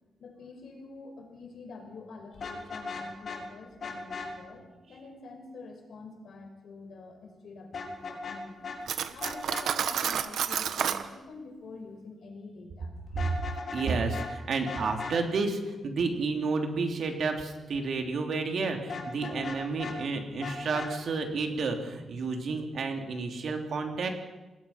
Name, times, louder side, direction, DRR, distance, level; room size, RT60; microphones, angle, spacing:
voice 1, 0.2-8.7 9.1-13.0, left 3 dB, 60° left, 3 dB, 5.9 m, -47 dB
Vehicle horn car horn honking, 2.3-3.4 3.8-4.3 7.7-8.4 8.6-8.8 9.2-9.7 13.1-13.9 14.1-14.3 14.7-15.2 18.9-20.0 20.4-20.9, left 5 dB, 45° left, 4.2 m, -37 dB
Cutlery silverware, 8.9-11.0, right 8 dB, 80° right, 1.3 m, -30 dB
voice 2, 13.7-24.1, right 4 dB, 55° right, 4 dB, 3.2 m, -31 dB
28.0 x 20.0 x 5.9 m, 1.1 s
wide cardioid pair, 155°, 0 cm